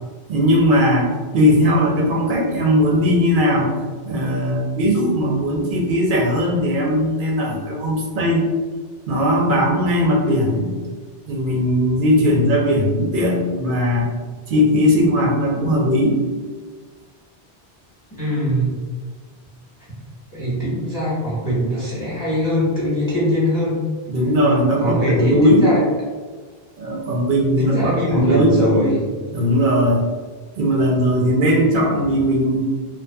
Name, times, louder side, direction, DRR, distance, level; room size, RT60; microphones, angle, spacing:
voice 1, 0.3-3.7 4.1-8.5 9.1-10.7 11.3-14.1 14.5-16.2 24.1-25.6 26.8-29.0 29.3-30.0 30.6-32.6, equal, 60° right, -2 dB, 0.7 m, -18 dB
voice 2, 18.2-18.7 20.3-23.8 24.8-25.8 27.6-28.9, equal, 20° left, -9 dB, 0.9 m, -21 dB
2.7 x 2.2 x 2.2 m, 1.4 s
omnidirectional pair, 1.0 m